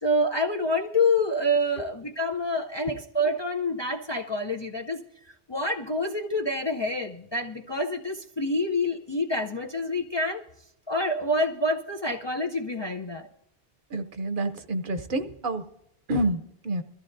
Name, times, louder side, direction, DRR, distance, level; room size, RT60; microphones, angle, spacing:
voice 1, 0.0-5.0 5.5-10.4 10.9-13.3, left 1 dB, 30° left, 3 dB, 0.5 m, -27 dB
voice 2, 13.9-15.6 16.1-16.8, right 1 dB, 55° right, 9 dB, 0.9 m, -28 dB
22.0 x 14.0 x 2.6 m, 0.82 s
omnidirectional pair, 1.1 m